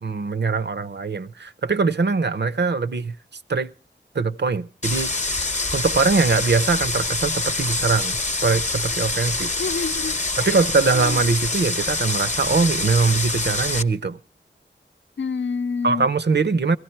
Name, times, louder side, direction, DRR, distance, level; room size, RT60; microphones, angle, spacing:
voice 1, 0.0-3.2 3.5-3.7 4.1-5.1 5.7-9.5 10.4-14.2 15.8-16.8, right 4 dB, 60° right, 0.7 m, -22 dB
sound 1, 4.8-13.8, left 3 dB, 35° left, 0.8 m, -25 dB
voice 2, 9.6-10.6 10.9-11.2 15.2-16.1, left 5 dB, 70° left, 0.6 m, -28 dB
17.0 x 14.5 x 4.4 m
wide cardioid pair, 45°, 20 cm